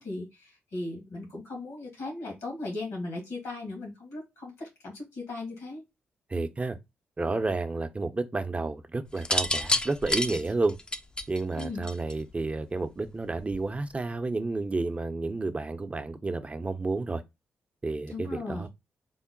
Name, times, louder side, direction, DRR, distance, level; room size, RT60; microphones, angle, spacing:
voice 1, 0.0-5.8 11.6-11.8 18.1-18.7, left 2 dB, 85° left, 2.1 m, -37 dB
voice 2, 6.3-6.8 7.2-10.8 11.3-17.2 17.8-18.7, right 3 dB, 30° right, 0.6 m, -31 dB
sound 1, 9.2-12.3 13.4-13.8, left 2 dB, 20° left, 0.4 m, -29 dB
3.8 x 2.1 x 3.6 m
supercardioid pair, 45°, 5 cm